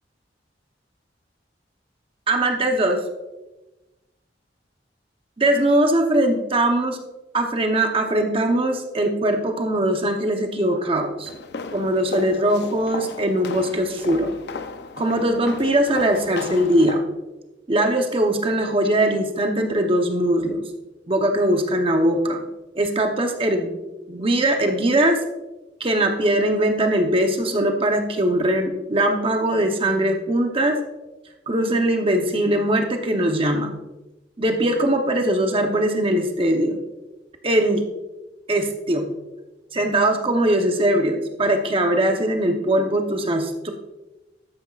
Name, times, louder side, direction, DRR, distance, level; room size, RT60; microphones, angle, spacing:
voice 1, 2.3-3.0 5.4-7.0 7.3-11.3 11.7-14.3 15.0-17.1 17.7-20.6 21.1-22.4 22.8-23.8 24.1-25.2 25.8-30.8 31.5-33.8 34.4-36.8 37.4-37.9 38.5-39.1 39.7-43.7, right 1 dB, 30° right, 4 dB, 0.8 m, -21 dB
sound 1, 11.2-17.0, left 4 dB, 60° left, 0.6 m, -35 dB
13.0 x 9.8 x 2.4 m, 1.0 s
head